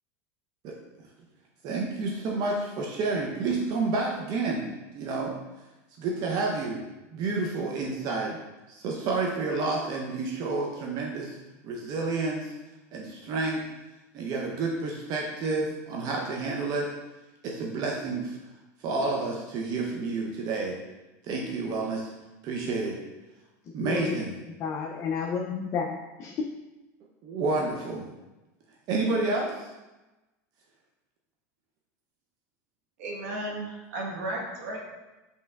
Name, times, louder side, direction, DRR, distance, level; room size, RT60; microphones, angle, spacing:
voice 1, 1.6-5.3 6.0-6.8 7.1-8.4 8.7-11.4 11.6-12.6 12.9-13.6 14.1-16.9 17.4-18.4 18.8-20.8 21.2-22.1 22.4-23.0 23.7-24.3 27.2-28.1 28.9-29.7, right 3 dB, 50° right, -1 dB, 0.6 m, -29 dB
voice 2, 23.8-24.2 24.6-26.5, left 5 dB, 35° left, 1 dB, 0.4 m, -31 dB
voice 3, 33.0-34.8, right 1 dB, 75° right, -2 dB, 1.1 m, -34 dB
5.4 x 3.2 x 2.3 m, 1.1 s
supercardioid pair, 120°, 8 cm